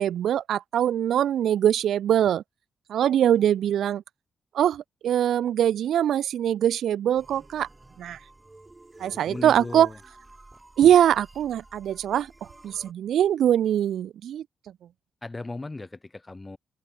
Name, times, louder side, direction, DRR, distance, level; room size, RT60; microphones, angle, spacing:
voice 1, 0.0-2.4 2.9-4.0 4.5-7.7 8.0-8.2 9.0-9.9 10.8-12.3 12.6-14.4, right 10 dB, 85° right, 0.6 m, -22 dB
sound 1, 7.1-12.9, right 2 dB, 15° right, 6.1 m, -50 dB
voice 2, 9.0-10.0 15.2-16.6, left 2 dB, 20° left, 1.6 m, -37 dB
open air
cardioid pair, 130°, 0 cm